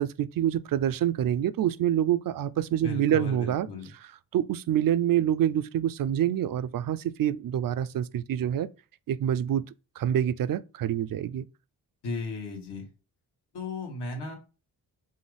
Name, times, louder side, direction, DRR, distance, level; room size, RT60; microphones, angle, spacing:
voice 1, 0.0-3.7 4.3-8.7 9.1-11.5, right 10 dB, 55° right, 0.4 m, -26 dB
voice 2, 2.7-3.9 12.0-12.9 13.5-14.4, left 3 dB, 75° left, 1.8 m, -35 dB
5.5 x 2.5 x 3.3 m
cardioid pair, 60°, 41 cm